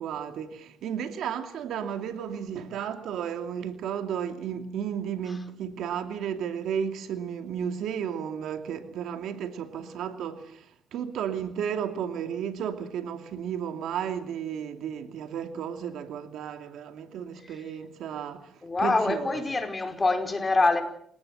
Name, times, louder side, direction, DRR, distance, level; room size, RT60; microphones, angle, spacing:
voice 1, 0.0-10.6 10.9-18.5 18.8-19.4, right 8 dB, 80° right, 2.7 m, -33 dB
voice 2, 18.6-20.8, left 3 dB, 25° left, 4.8 m, -25 dB
28.0 x 18.0 x 8.0 m
cardioid pair, 90°, 0 cm